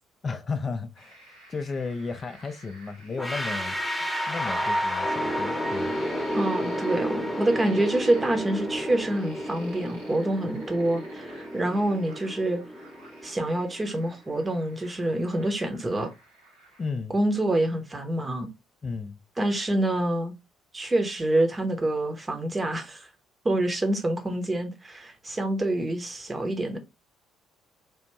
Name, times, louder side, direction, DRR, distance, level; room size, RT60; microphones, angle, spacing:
voice 1, 0.2-5.9 16.8-17.2 18.8-19.2, left 4 dB, 30° left, 0.4 m, -34 dB
sound 1, 1.0-16.9, right 1 dB, 75° right, 1.2 m, -52 dB
sound 2, 3.2-14.1, equal, ahead, 0.9 m, -31 dB
voice 2, 6.3-12.6 13.2-16.1 17.1-18.5 19.4-20.3 20.7-23.1 23.4-26.8, right 1 dB, 20° right, 0.8 m, -26 dB
3.4 x 2.5 x 3.0 m
figure-of-eight pair, 50°, 0 cm